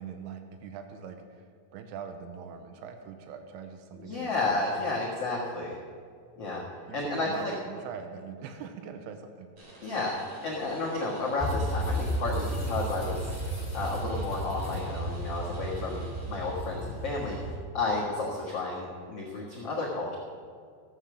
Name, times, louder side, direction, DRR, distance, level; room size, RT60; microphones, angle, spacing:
voice 1, 0.0-1.5 1.7-4.9 6.9-9.5, right 6 dB, 85° right, 6 dB, 2.3 m, -42 dB
voice 2, 4.0-5.8 6.4-6.6 6.9-7.5 9.8-10.1 10.4-13.3 13.7-17.4 17.7-20.1, left 3 dB, 90° left, -5 dB, 1.3 m, -32 dB
sound 1, 9.6-16.8, right 2 dB, 45° right, 3.4 m, -50 dB
sound 2, 11.4-17.6, equal, 30° left, 1.6 m, -33 dB
15.0 x 8.1 x 6.3 m, 2.2 s
omnidirectional pair, 5.5 m